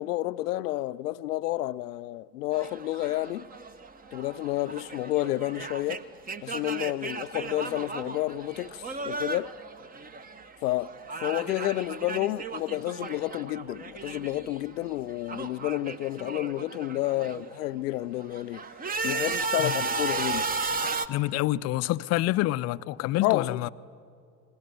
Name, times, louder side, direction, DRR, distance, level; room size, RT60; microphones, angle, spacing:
voice 1, 0.0-3.5 4.1-6.0 6.4-9.6 10.6-10.9 11.2-18.6 19.0-20.5 23.2-23.7, left 16 dB, 65° left, 0.7 m, -30 dB
sound 1, 2.5-10.6 10.8-14.6 14.8-17.5 18.0-21.1, right 4 dB, 15° right, 0.9 m, -35 dB
voice 2, 21.1-23.7, left 16 dB, 30° left, 0.6 m, -27 dB
30.0 x 21.0 x 6.7 m
hypercardioid pair, 85°, 50 cm